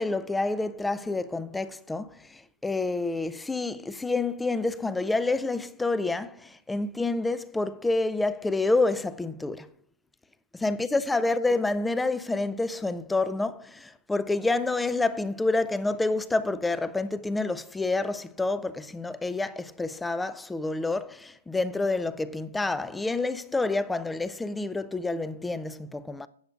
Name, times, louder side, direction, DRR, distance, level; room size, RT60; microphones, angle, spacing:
voice 1, 0.0-9.7 10.5-26.3, left 3 dB, 5° left, 0.4 m, -28 dB
16.5 x 7.8 x 2.4 m
hypercardioid pair, 130°, 0 cm